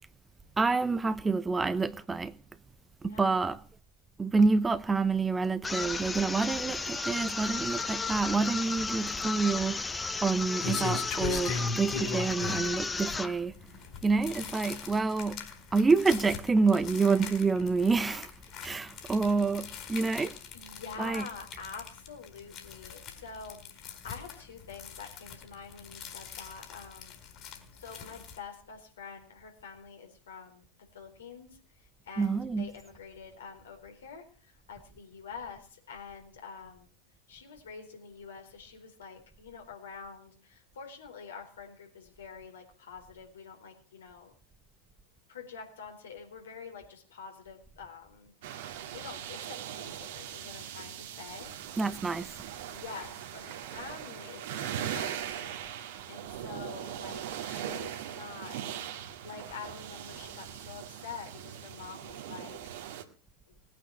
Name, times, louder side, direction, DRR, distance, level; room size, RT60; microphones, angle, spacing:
voice 1, 0.6-2.3 3.0-3.6 4.2-13.5 14.0-15.4 15.7-18.3 18.6-20.3 21.0-21.3 32.2-32.7 51.8-52.3, right 4 dB, 15° right, 0.9 m, -28 dB
voice 2, 3.0-3.4 10.1-10.2 13.9-14.0 18.4-18.6 20.5-27.2 27.8-30.6 30.9-31.6 32.1-36.9 37.3-44.3 45.3-51.9 52.7-55.6 56.1-58.6 59.2-62.6, left 5 dB, 75° left, 4.2 m, -46 dB
sound 1, 5.6-13.4, left 3 dB, 15° left, 1.1 m, -34 dB
sound 2, 9.8-28.4, left 5 dB, 45° left, 4.6 m, -40 dB
sound 3, 48.4-63.0, right 10 dB, 65° right, 1.9 m, -40 dB
18.5 x 9.1 x 7.4 m
figure-of-eight pair, 85°, 0 cm